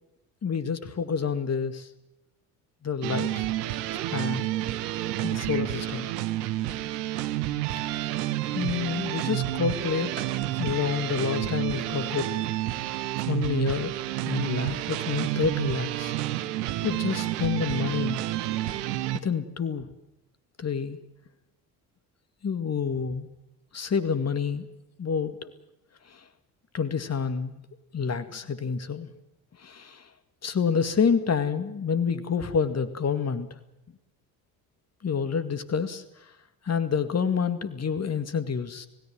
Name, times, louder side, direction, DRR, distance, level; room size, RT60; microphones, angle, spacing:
voice 1, 0.4-1.9 2.8-3.5 4.1-4.5 5.2-6.1 7.8-7.9 8.5-12.3 13.3-13.9 14.2-16.1 16.8-18.2 19.1-19.9 20.6-21.0 22.4-23.3 23.7-24.7 25.0-25.5 26.1-26.2 26.7-27.6 27.9-29.1 29.6-30.1 30.4-33.5 35.0-36.3 36.6-38.9, left 6 dB, 30° left, 11 dB, 2.3 m, -28 dB
sound 1, 3.0-19.2, right 15 dB, 75° right, 1.3 m, -30 dB
28.0 x 17.5 x 7.7 m, 0.93 s
hypercardioid pair, 55°, 49 cm